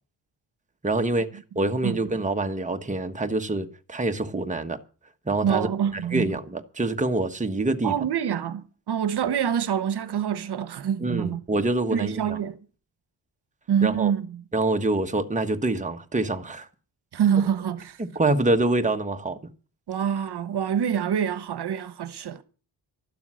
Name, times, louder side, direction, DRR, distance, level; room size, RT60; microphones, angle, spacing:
voice 1, 0.8-1.3 1.5-4.8 5.3-7.9 11.0-12.4 13.8-14.1 14.5-16.7 18.0-19.4, right 2 dB, 20° right, 1.3 m, -26 dB
voice 2, 1.6-2.0 5.4-6.3 7.8-11.4 11.9-12.6 13.7-14.4 17.1-18.0 19.9-22.4, right 8 dB, 70° right, 1.2 m, -26 dB
12.5 x 12.0 x 6.3 m
wide cardioid pair, 110°, 42 cm